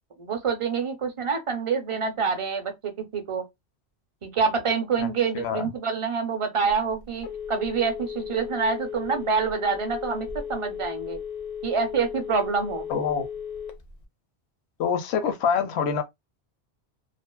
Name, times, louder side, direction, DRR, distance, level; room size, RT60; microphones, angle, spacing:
voice 1, 0.2-3.4 4.2-11.2 11.6-12.9, right 5 dB, 40° right, 0.5 m, -27 dB
voice 2, 5.3-5.7 12.9-13.3 14.8-16.0, left 7 dB, 85° left, 0.9 m, -25 dB
Telephone, 6.7-14.0, left 7 dB, 55° left, 0.5 m, -35 dB
2.5 x 2.4 x 2.2 m
omnidirectional pair, 1.1 m